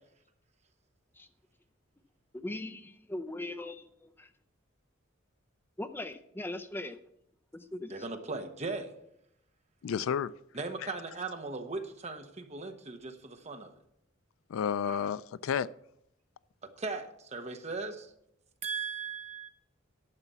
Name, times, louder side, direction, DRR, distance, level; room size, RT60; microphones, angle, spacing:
voice 1, 2.3-4.3 5.8-7.0 7.5-7.9, left 1 dB, 10° left, 8 dB, 0.5 m, -40 dB
voice 2, 7.9-8.9 10.5-13.7 14.8-15.1 16.8-18.1 18.6-19.5, right 4 dB, 35° right, 6 dB, 1.0 m, -38 dB
voice 3, 9.8-10.3 10.8-10.9 14.5-15.7, left 7 dB, 80° left, 19 dB, 0.3 m, -31 dB
11.0 x 5.8 x 6.8 m, 0.77 s
head